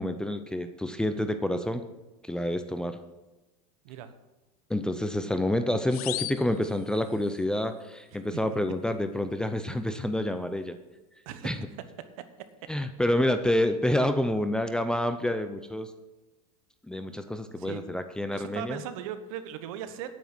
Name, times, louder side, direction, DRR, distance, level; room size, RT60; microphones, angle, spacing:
voice 1, 0.0-1.8 2.2-3.0 4.7-10.8 11.4-11.6 12.7-15.9 16.9-18.8, left 1 dB, 5° left, 9 dB, 0.5 m, -28 dB
sound 1, 5.9-7.4, left 15 dB, 75° left, 0.7 m, -37 dB
voice 2, 18.3-20.1, right 10 dB, 65° right, 11 dB, 1.2 m, -38 dB
9.2 x 9.2 x 6.0 m, 1.1 s
supercardioid pair, 135°, 19 cm